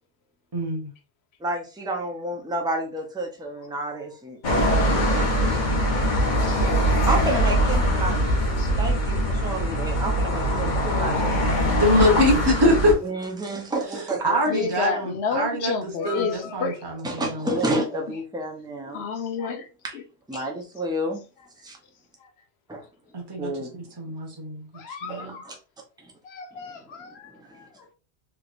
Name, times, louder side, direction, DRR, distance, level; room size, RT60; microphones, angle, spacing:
voice 1, 0.5-0.9 11.7-12.9 14.2-15.7 16.0-17.5 23.1-24.6 25.0-25.4, equal, 25° right, 1.0 m, -24 dB
voice 2, 1.4-4.4 4.7-5.6 7.1-8.3 8.8-11.6 11.9-12.0 13.0-14.6 17.0-19.1 19.8-20.0 20.3-21.2 21.6-21.8 22.7-22.8 23.4-23.8 25.1-25.6 27.4-27.6, right 1 dB, 5° right, 0.6 m, -30 dB
sound 1, 4.4-12.9, equal, 45° left, 1.1 m, -22 dB
voice 3, 14.5-16.8 18.9-19.7 19.9-20.0 20.3-20.4 24.7-25.5 26.2-27.7, left 5 dB, 75° left, 0.9 m, -30 dB
3.3 x 3.0 x 2.5 m
omnidirectional pair, 1.1 m